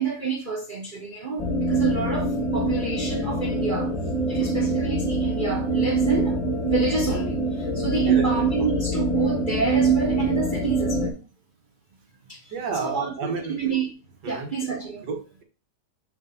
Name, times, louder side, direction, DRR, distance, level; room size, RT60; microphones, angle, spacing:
voice 1, 0.0-3.9 4.3-6.4 6.6-11.2 12.3-12.4 12.8-13.9 14.2-15.1, right 5 dB, 35° right, 1.0 m, -28 dB
sound 1, 1.4-11.1, right 2 dB, 30° left, 0.8 m, -25 dB
voice 2, 8.0-8.4 12.5-13.6 14.2-14.5 15.0-15.4, right 4 dB, 90° right, 1.9 m, -31 dB
5.9 x 3.3 x 5.5 m
omnidirectional pair, 1.8 m